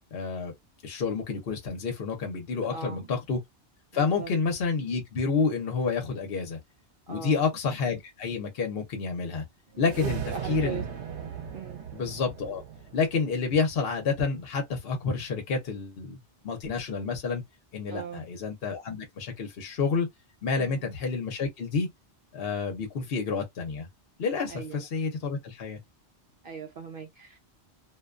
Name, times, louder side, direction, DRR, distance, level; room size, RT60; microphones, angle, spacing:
voice 1, 0.1-0.5 0.8-3.4 3.9-6.6 7.1-9.4 9.8-10.9 11.9-12.6 12.9-17.4 17.7-20.1 20.4-21.9 22.3-23.9 24.2-25.8, left 4 dB, 60° left, 0.9 m, -29 dB
voice 2, 2.6-3.1 3.9-4.3 7.1-7.4 9.7-10.8 11.5-11.8 17.9-18.2 20.6-20.9 24.5-24.8 26.4-27.4, right 6 dB, 60° right, 0.7 m, -39 dB
sound 1, 9.8-14.2, right 7 dB, 90° right, 0.9 m, -37 dB
2.5 x 2.2 x 2.4 m
omnidirectional pair, 1.1 m